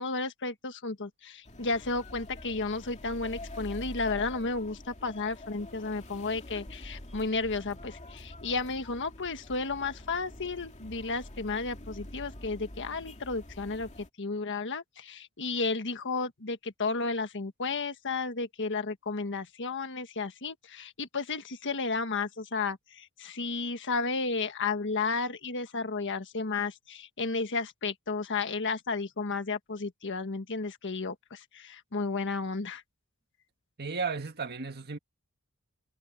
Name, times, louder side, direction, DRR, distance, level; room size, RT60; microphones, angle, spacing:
voice 1, 0.0-13.9 14.2-32.8, left 4 dB, 55° left, 1.5 m, -33 dB
sound 1, 1.5-14.1, left 1 dB, 35° left, 2.3 m, -46 dB
voice 2, 33.8-35.0, right 4 dB, 50° right, 1.8 m, -34 dB
head